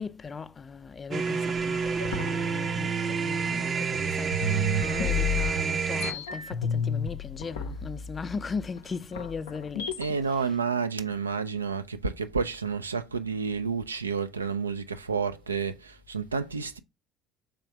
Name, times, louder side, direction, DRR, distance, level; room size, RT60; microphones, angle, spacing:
voice 1, 0.0-4.4 4.8-9.9 10.3-10.6, left 5 dB, 30° left, 0.4 m, -38 dB
sound 1, 1.1-6.1, right 5 dB, 35° right, 0.5 m, -29 dB
sound 2, 2.0-3.9 4.3-10.1, left 3 dB, 80° left, 0.6 m, -32 dB
voice 2, 10.0-16.8, right 5 dB, 90° right, 0.3 m, -30 dB
3.5 x 3.3 x 4.5 m
figure-of-eight pair, 60°, 0 cm